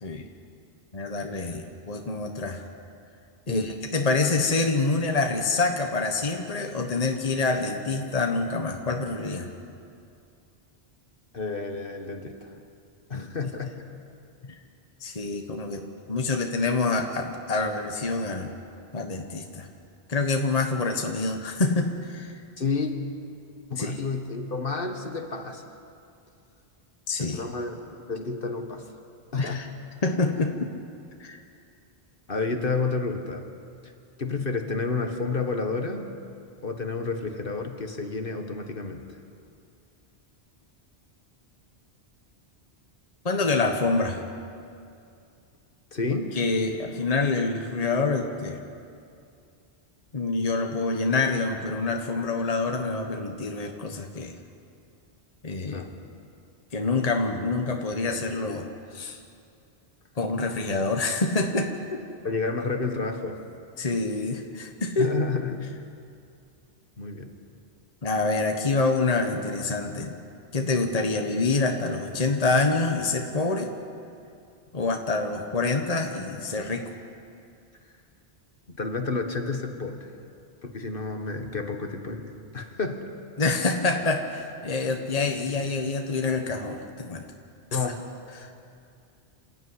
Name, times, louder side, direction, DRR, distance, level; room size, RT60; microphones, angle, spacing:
voice 1, 0.9-2.6 3.5-9.5 13.1-13.5 15.0-15.8 16.1-18.5 18.9-19.7 20.1-22.4 23.8-24.0 27.1-27.4 29.4-29.7 30.0-30.7 31.2-31.4 43.2-44.2 46.3-48.6 50.1-54.3 55.4-55.8 56.7-59.2 60.2-62.0 63.8-65.1 68.0-70.1 70.5-73.7 74.7-76.9 83.4-87.2 87.7-87.8 88.4-88.5, left 3 dB, 35° left, 3 dB, 1.4 m, -26 dB
voice 2, 11.3-12.5 13.1-13.7 22.6-22.9 23.7-25.7 27.2-27.8 28.1-28.8 29.3-29.7 32.3-33.4 33.8-33.9 34.2-36.1 36.6-39.0 45.9-46.4 55.7-55.9 62.2-63.4 65.0-65.7 67.0-67.3 78.7-80.1 80.6-83.1 87.7-88.0, left 4 dB, 55° left, 5 dB, 1.7 m, -30 dB
27.5 x 14.0 x 9.8 m, 2.5 s
omnidirectional pair, 1.1 m